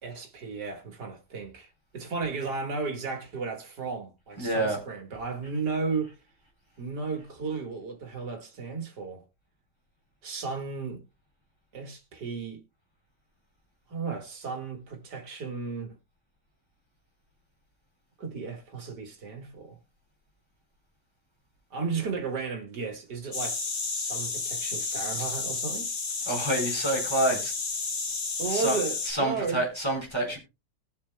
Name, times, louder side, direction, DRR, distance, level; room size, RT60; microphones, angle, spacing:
voice 1, 0.0-6.2 6.8-9.2 10.2-11.0 11.7-12.6 13.9-16.0 18.2-19.8 21.7-23.6 23.9-25.9 28.4-29.6, right 4 dB, 70° right, 2.4 m, -34 dB
voice 2, 4.4-4.8 26.2-27.5 28.5-28.8 29.0-30.4, right 1 dB, 15° left, 4.5 m, -27 dB
sound 1, 23.3-29.1, left 4 dB, 45° left, 1.5 m, -31 dB
20.0 x 7.3 x 2.2 m
omnidirectional pair, 1.8 m